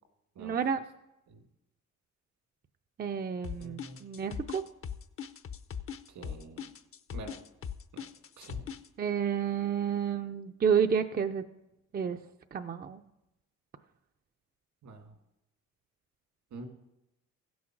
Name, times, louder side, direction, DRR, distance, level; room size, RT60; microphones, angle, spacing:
voice 1, 0.4-0.8 3.0-4.6 9.0-11.4 11.9-12.2 12.5-13.0, right 7 dB, 30° right, 6 dB, 0.5 m, -30 dB
sound 1, 3.4-8.9, left 7 dB, 45° left, 0.7 m, -39 dB
voice 2, 3.6-4.0 6.1-6.7 7.1-7.4 7.9-8.0 8.4-8.6 14.8-15.2 16.5-16.7, right 3 dB, 75° right, 4 dB, 2.1 m, -46 dB
15.5 x 6.2 x 6.0 m, 0.92 s
cardioid pair, 90°, 30 cm